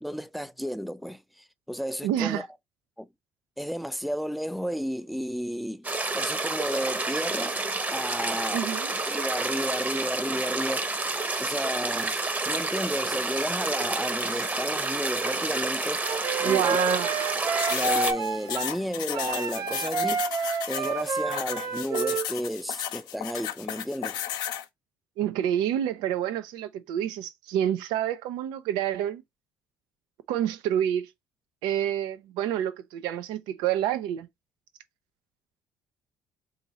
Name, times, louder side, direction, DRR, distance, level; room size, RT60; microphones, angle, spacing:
voice 1, 0.0-2.5 3.0-3.1 3.6-5.9 6.1-7.6 7.9-8.6 9.1-10.9 11.4-12.2 12.4-16.8 17.7-20.3 20.7-24.2, equal, ahead, 0.5 m, -32 dB
voice 2, 2.0-2.4 8.5-8.9 16.4-17.2 25.2-29.2 30.3-31.1 31.6-34.3, right 10 dB, 80° right, 0.6 m, -28 dB
sound 1, 5.8-18.1, right 2 dB, 25° right, 0.9 m, -29 dB
Wind instrument woodwind instrument, 16.0-18.7 19.1-22.3, right 5 dB, 55° right, 1.0 m, -29 dB
sound 2, 17.6-24.7, left 11 dB, 75° left, 0.6 m, -34 dB
3.7 x 2.8 x 4.1 m
supercardioid pair, 70°, 7 cm